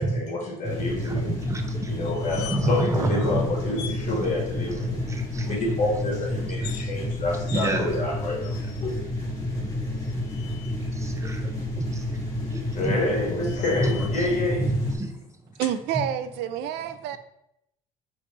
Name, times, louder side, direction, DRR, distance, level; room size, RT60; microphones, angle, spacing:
voice 1, 0.0-1.3 1.9-5.0 5.5-8.5 8.8-9.0 12.7-14.6, left 2 dB, 45° left, -2 dB, 1.7 m, -28 dB
sound 1, 0.6-15.0, left 1 dB, 20° left, 1.7 m, -30 dB
voice 2, 1.5-2.0 2.4-3.5 4.2-4.3 5.0-5.6 6.4-6.7 7.5-7.9 9.6-9.7 10.9-12.2 12.5-13.0 13.7-14.3 14.6-15.1, right 2 dB, 15° right, 6 dB, 0.6 m, -28 dB
sound 2, 2.0-2.9 3.2-3.3 3.7-4.0 6.5-6.9 7.5-7.7 8.4-9.0 10.0-10.8 12.7-14.3 15.6-15.8, left 11 dB, 85° left, 0.4 m, -42 dB
voice 3, 15.6-17.2, right 10 dB, 90° right, 12 dB, 0.4 m, -28 dB
5.1 x 3.2 x 3.1 m, 0.81 s
cardioid pair, 110°, 17 cm